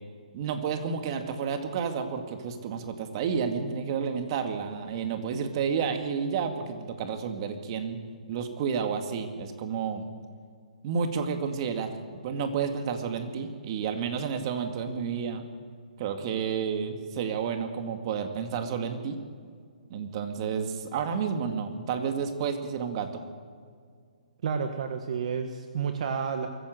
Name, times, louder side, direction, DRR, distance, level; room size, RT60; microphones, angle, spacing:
voice 1, 0.3-8.0 8.3-10.1 10.8-12.0 12.2-15.5 16.0-19.2 19.9-23.2, right 6 dB, 35° right, 6 dB, 2.2 m, -31 dB
voice 2, 24.4-26.5, right 6 dB, 55° right, 6 dB, 1.5 m, -30 dB
22.0 x 15.0 x 8.0 m, 2.1 s
hypercardioid pair, 155°, 4 cm